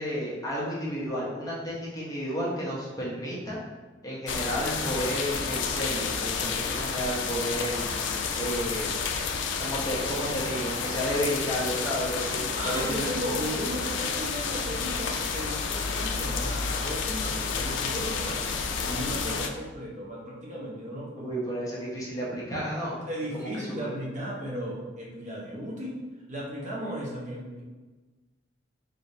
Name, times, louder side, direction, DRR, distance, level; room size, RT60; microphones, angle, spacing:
voice 1, 0.0-3.6 4.0-7.9 8.4-8.9 9.5-13.2 21.2-23.0 23.3-23.9, equal, 20° left, -6 dB, 0.8 m, -32 dB
sound 1, 4.3-19.5, left 5 dB, 75° left, 0.4 m, -30 dB
voice 2, 12.5-18.5 18.8-21.4 23.1-26.0 26.3-27.6, equal, 40° right, -5 dB, 1.0 m, -35 dB
3.8 x 3.4 x 2.7 m, 1.2 s
head